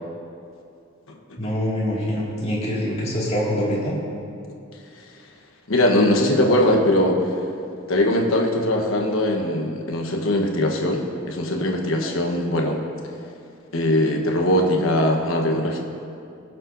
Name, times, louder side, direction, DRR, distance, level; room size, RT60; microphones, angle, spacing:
voice 1, 1.4-3.9, equal, 30° left, -6 dB, 2.2 m, -24 dB
voice 2, 5.7-7.2 7.9-12.8 13.7-15.8, left 1 dB, 80° left, 1 dB, 1.2 m, -21 dB
20.5 x 7.4 x 2.7 m, 2.5 s
head